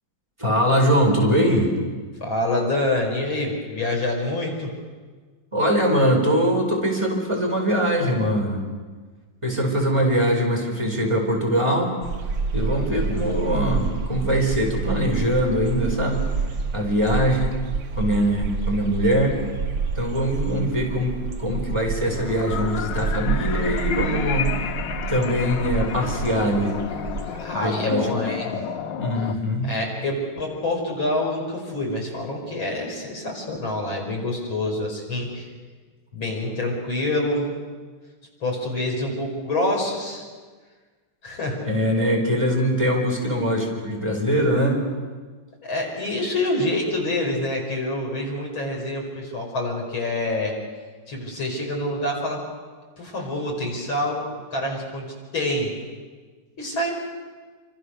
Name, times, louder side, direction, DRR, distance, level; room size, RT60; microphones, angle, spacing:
voice 1, 0.4-1.7 5.5-8.6 9.4-11.9 12.5-16.3 16.7-17.5 18.0-19.4 19.9-24.5 25.1-26.7 27.6-28.1 28.5-28.6 29.0-29.7 41.6-44.9, equal, 15° right, 0 dB, 4.9 m, -22 dB
voice 2, 2.2-4.7 12.8-13.3 27.4-28.5 29.6-35.5 36.1-37.5 38.4-40.3 41.2-41.7 45.6-50.5 51.1-52.4 53.0-54.2 54.5-55.7 56.6-56.9, left 1 dB, 90° left, 0 dB, 6.2 m, -26 dB
sound 1, 12.0-27.5, right 5 dB, 60° right, 2.0 m, -29 dB
sound 2, 22.0-29.3, left 8 dB, 70° left, 1.6 m, -31 dB
29.0 x 25.5 x 6.6 m, 1.4 s
omnidirectional pair, 2.1 m